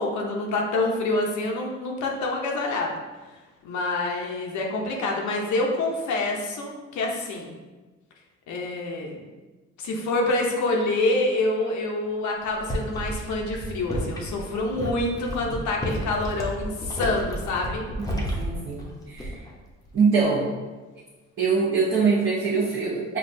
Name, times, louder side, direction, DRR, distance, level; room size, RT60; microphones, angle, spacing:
voice 1, 0.0-3.0 3.6-7.6 8.5-9.2 9.8-17.9, left 2 dB, 70° left, 0 dB, 0.7 m, -27 dB
sound 1, 12.4-19.6 19.9-20.2, equal, 10° left, 0.7 m, -32 dB
voice 2, 18.1-19.3 19.9-20.5 21.4-23.2, right 5 dB, 40° right, -7 dB, 0.9 m, -23 dB
5.3 x 2.3 x 2.6 m, 1.2 s
cardioid pair, 90°, 30 cm